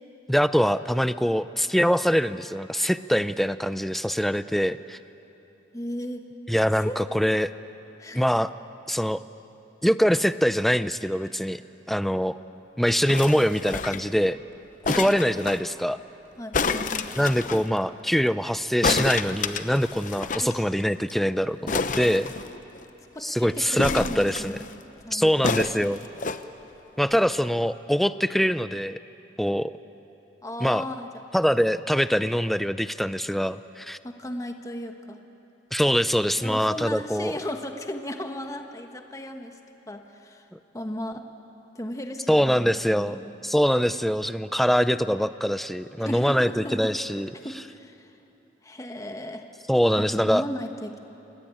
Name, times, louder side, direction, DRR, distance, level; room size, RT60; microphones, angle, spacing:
voice 1, 0.3-5.0 6.5-7.5 8.1-8.5 8.9-9.2 9.8-11.6 11.9-12.4 12.8-14.4 15.0-16.0 17.2-22.3 23.2-24.6 25.1-26.0 27.0-29.0 29.4-29.7 30.6-30.8 31.3-34.0 35.7-37.3 42.3-43.2 43.4-47.3 49.7-50.4, equal, ahead, 13 dB, 0.5 m, -23 dB
voice 2, 5.7-6.2 6.8-7.0 8.0-8.2 14.9-15.1 16.4-17.1 20.4-20.7 23.1-24.7 25.0-25.6 30.4-31.3 34.0-35.2 36.4-39.6 39.9-40.5 40.7-41.3 41.7-43.3 46.0-48.2 48.6-49.5 50.0-51.0, left 1 dB, 15° left, 5 dB, 1.2 m, -36 dB
sound 1, 13.1-14.1 14.8-15.6 16.5-17.6 18.8-20.5 20.8-20.9 21.1-21.2 21.7-22.8 23.8-24.7 25.4-26.4 27.1-27.2, left 4 dB, 45° left, 0.8 m, -29 dB
27.0 x 19.5 x 9.1 m, 3.0 s
head